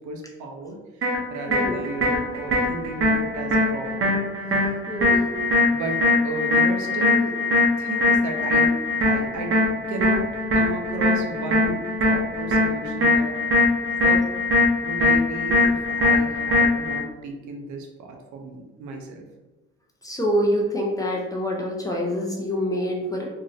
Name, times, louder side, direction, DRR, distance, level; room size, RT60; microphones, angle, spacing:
voice 1, 0.0-4.2 5.7-7.4 7.8-13.4 14.0-14.3 14.8-19.3, right 2 dB, 70° right, 2 dB, 0.6 m, -34 dB
sound 1, 1.0-17.0, left 2 dB, 45° right, 0.9 m, -21 dB
voice 2, 1.5-1.8 4.9-5.3 20.0-23.3, equal, 10° left, -1 dB, 0.6 m, -26 dB
2.9 x 2.7 x 2.6 m, 1.1 s
cardioid pair, 90°, 30 cm